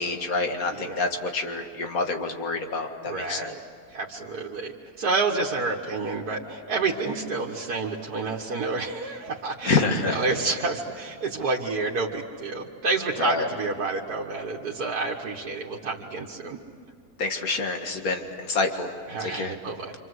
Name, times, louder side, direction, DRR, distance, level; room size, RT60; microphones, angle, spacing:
voice 1, 0.0-3.5 9.6-10.2 13.2-13.5 17.2-18.9 19.2-19.5, left 3 dB, 65° left, 4 dB, 2.3 m, -27 dB
voice 2, 0.7-1.0 3.0-3.6 3.9-16.6 19.1-19.9, right 3 dB, 85° right, -3 dB, 2.0 m, -29 dB
27.5 x 26.5 x 7.9 m, 2.4 s
omnidirectional pair, 1.6 m